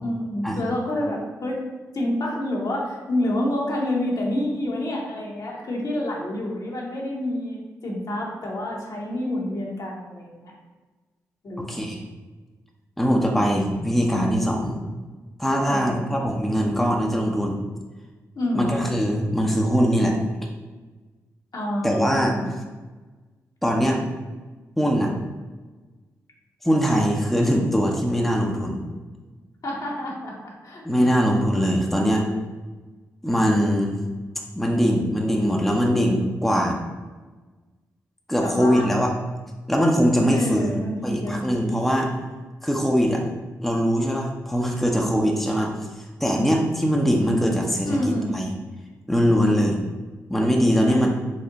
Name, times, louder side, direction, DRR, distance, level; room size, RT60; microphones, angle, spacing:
voice 1, 0.0-1.7 1.9-10.5 11.4-11.8 15.6-16.1 18.3-18.8 21.5-22.5 28.5-28.7 29.6-31.1 38.4-39.0 40.3-41.4 47.8-48.4 50.9-51.1, left 1 dB, 60° left, -2 dB, 1.1 m, -28 dB
voice 2, 11.7-12.0 13.0-14.8 15.4-17.6 18.5-20.2 21.8-22.3 23.6-24.0 24.8-25.2 26.6-28.9 30.8-32.2 33.2-34.0 34.6-36.8 38.3-39.1 39.7-42.1 42.6-43.2 43.6-45.7 46.2-48.0 48.3-48.5 49.1-49.8 50.3-51.1, equal, 5° left, 0 dB, 0.6 m, -21 dB
4.2 x 2.1 x 3.8 m, 1.3 s
supercardioid pair, 45°, 7 cm